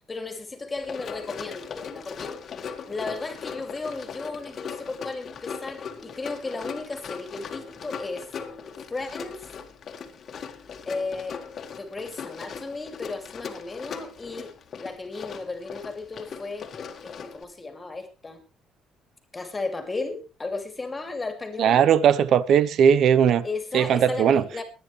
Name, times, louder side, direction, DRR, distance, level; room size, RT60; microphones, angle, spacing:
voice 1, 0.1-2.3 2.9-8.3 8.9-9.5 10.9-11.4 11.7-14.5 14.8-16.7 17.0-18.4 19.3-21.8 23.4-24.6, left 3 dB, 15° left, 2.6 m, -34 dB
Run, 0.8-17.4, left 6 dB, 40° left, 1.8 m, -39 dB
voice 2, 21.6-23.4 23.7-24.5, right 8 dB, 55° right, 0.8 m, -18 dB
22.5 x 9.5 x 3.3 m
cardioid pair, 145°, 0 cm